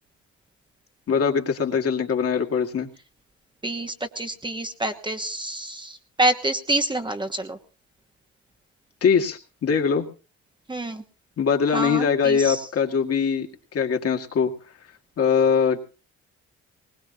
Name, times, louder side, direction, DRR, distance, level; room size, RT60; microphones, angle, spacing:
voice 1, 1.1-2.9 9.0-10.1 11.4-14.5 15.2-15.8, left 6 dB, 55° left, 2 dB, 2.1 m, -22 dB
voice 2, 3.6-7.6 10.7-11.0 11.7-12.7, right 1 dB, 15° right, 6 dB, 1.2 m, -27 dB
20.0 x 19.5 x 2.9 m, 0.33 s
cardioid pair, 105°, 29 cm